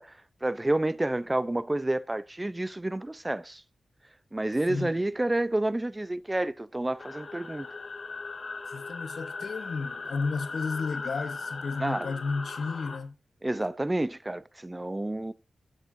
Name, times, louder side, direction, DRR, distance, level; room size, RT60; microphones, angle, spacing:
voice 1, 0.0-3.6 4.3-7.7 11.8-12.1 13.4-15.3, right 1 dB, 20° right, 0.5 m, -29 dB
sound 1, 7.0-13.0, left 3 dB, 55° left, 2.0 m, -38 dB
voice 2, 8.7-13.2, left 4 dB, 75° left, 1.1 m, -33 dB
17.5 x 7.2 x 2.6 m
cardioid pair, 65°, 0 cm